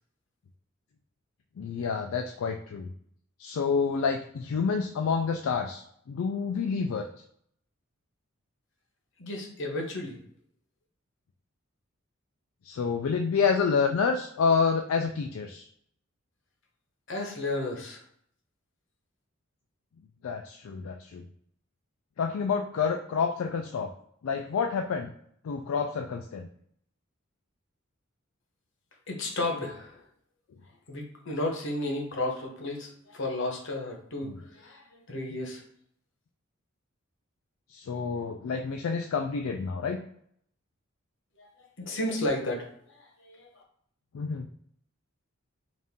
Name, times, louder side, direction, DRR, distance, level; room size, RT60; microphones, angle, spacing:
voice 1, 1.6-2.9 3.4-7.1 12.6-15.6 20.2-21.2 22.2-23.9 24.2-25.1 25.4-26.5 34.2-34.3 37.7-40.0 44.1-44.5, left 5 dB, 80° left, 4 dB, 0.4 m, -28 dB
voice 2, 9.2-10.2 17.1-18.0 29.1-30.0 30.9-35.6 41.4-41.5 41.8-43.5, left 2 dB, 60° left, 1 dB, 0.9 m, -33 dB
4.1 x 2.5 x 3.5 m, 0.67 s
head